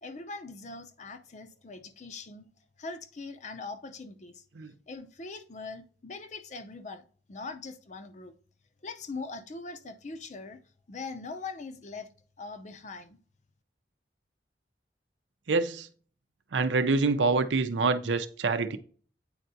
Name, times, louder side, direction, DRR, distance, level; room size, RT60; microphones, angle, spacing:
voice 1, 0.0-2.5 2.8-4.4 4.9-8.3 8.8-10.6 10.9-12.1 12.4-13.2, left 3 dB, 40° left, 0.6 m, -41 dB
voice 2, 15.5-15.9 16.5-18.8, right 3 dB, 85° right, 0.6 m, -26 dB
8.7 x 4.5 x 2.7 m
head